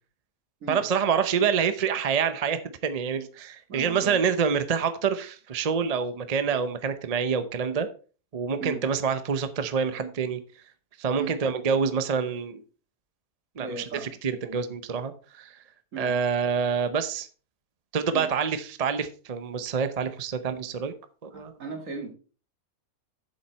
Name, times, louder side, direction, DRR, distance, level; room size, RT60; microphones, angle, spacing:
voice 1, 0.7-7.9 8.3-10.4 11.0-12.6 13.6-13.8 14.2-15.6 16.0-17.3 17.9-20.9 21.2-21.5, right 6 dB, 40° right, 11 dB, 0.6 m, -27 dB
voice 2, 3.7-4.3 8.6-8.8 11.1-11.4 13.6-14.1 15.9-16.2 18.1-18.3 21.3-22.1, right 4 dB, 60° right, 4 dB, 2.1 m, -37 dB
8.0 x 7.2 x 4.5 m, 0.38 s
omnidirectional pair, 1.5 m